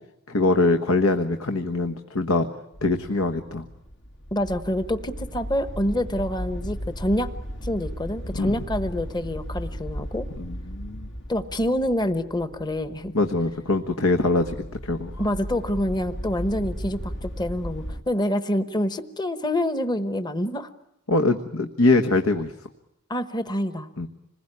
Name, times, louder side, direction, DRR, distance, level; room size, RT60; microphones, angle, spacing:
voice 1, 0.3-2.5 2.8-3.6 8.3-8.5 10.4-11.1 13.1-14.5 14.8-15.1 21.1-22.5 24.0-24.1, left 2 dB, 75° left, 6 dB, 1.4 m, -23 dB
sound 1, 2.7-18.0, equal, 60° left, 1.9 m, -36 dB
voice 2, 4.3-7.3 7.6-10.3 11.3-13.1 15.2-20.7 23.1-23.9, left 1 dB, 20° left, 10 dB, 1.1 m, -27 dB
26.5 x 21.0 x 9.9 m, 0.84 s
head